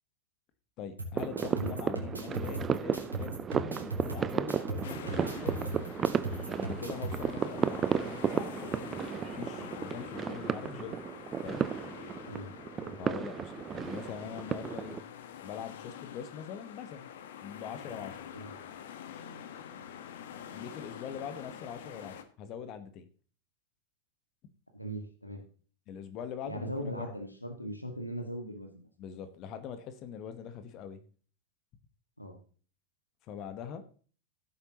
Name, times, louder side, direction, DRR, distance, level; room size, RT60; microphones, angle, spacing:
voice 1, 0.8-5.7 6.5-11.0 11.4-11.6 13.0-15.0 15.4-17.1 17.4-18.2 20.5-23.1 25.9-27.1 29.0-31.0 33.3-33.8, left 8 dB, 40° left, 10 dB, 1.3 m, -43 dB
sound 1, 1.0-7.2, right 2 dB, 85° right, 3.2 m, -39 dB
sound 2, 1.2-15.0, right 7 dB, 25° right, 0.6 m, -34 dB
sound 3, 4.8-22.2, left 9 dB, 55° left, 1.3 m, -46 dB
voice 2, 24.7-25.4 26.4-28.9 32.2-32.4, right 1 dB, 85° left, 5 dB, 1.9 m, -39 dB
16.0 x 8.3 x 3.0 m, 0.41 s
figure-of-eight pair, 90°, 0 cm